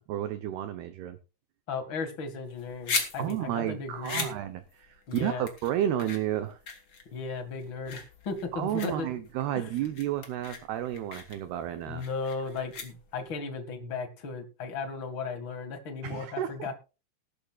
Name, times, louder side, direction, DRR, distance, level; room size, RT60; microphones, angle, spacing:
voice 1, 0.1-1.2 3.2-6.6 8.5-12.0 16.0-16.7, right 11 dB, 75° right, 9 dB, 2.5 m, -32 dB
voice 2, 1.7-4.3 5.1-5.5 7.1-9.1 9.5-9.7 11.9-16.8, left 4 dB, 50° left, 9 dB, 1.4 m, -36 dB
sound 1, 2.5-13.4, left 4 dB, 30° left, 2.8 m, -38 dB
19.5 x 12.0 x 2.4 m, 0.31 s
omnidirectional pair, 5.6 m